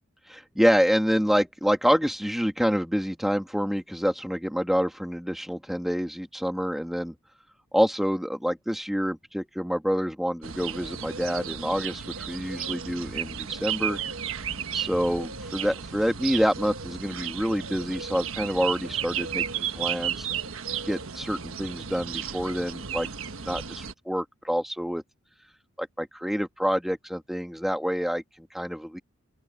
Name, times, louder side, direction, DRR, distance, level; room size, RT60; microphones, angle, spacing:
voice 1, 0.3-7.1 7.7-14.0 14.7-20.3 20.9-23.1 23.4-25.0 25.8-29.0, equal, ahead, 2.0 m, -27 dB
sound 1, 10.4-23.9, right 8 dB, 75° right, 1.3 m, -34 dB
open air
head